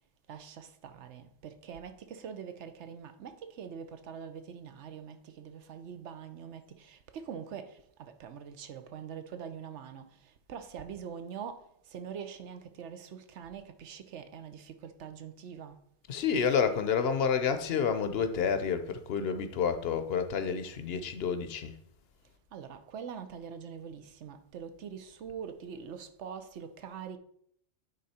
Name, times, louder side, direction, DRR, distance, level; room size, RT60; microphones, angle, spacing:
voice 1, 0.3-15.8 22.5-27.2, right 7 dB, 80° right, 1.0 m, -44 dB
voice 2, 16.1-21.7, left 6 dB, 65° left, 0.9 m, -29 dB
9.5 x 3.8 x 4.2 m
omnidirectional pair, 1.2 m